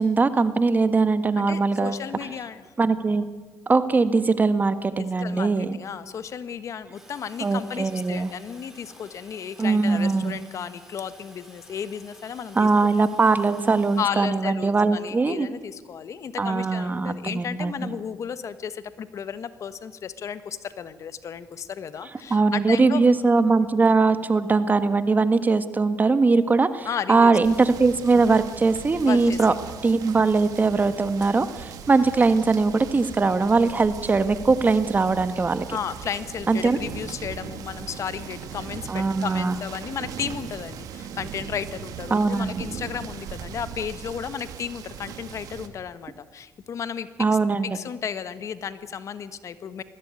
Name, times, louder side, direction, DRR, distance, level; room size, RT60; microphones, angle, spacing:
voice 1, 0.0-2.0 2.8-3.2 3.7-5.8 7.4-8.3 9.6-10.4 12.5-15.5 16.4-17.9 22.3-29.5 29.8-35.6 36.5-36.8 38.9-39.5 42.1-42.6 47.2-47.8, right 4 dB, 25° right, 11 dB, 1.5 m, -21 dB
voice 2, 1.4-2.6 5.0-12.7 14.0-23.1 26.8-27.3 29.1-29.4 35.7-47.1 47.6-49.8, left 7 dB, 50° left, 13 dB, 1.3 m, -34 dB
Toilet flush, 6.9-14.0, right 1 dB, 5° right, 5.7 m, -52 dB
sound 1, 27.4-45.7, right 7 dB, 70° right, 2.1 m, -39 dB
21.0 x 15.5 x 9.7 m, 1.3 s
cardioid pair, 85°, 6 cm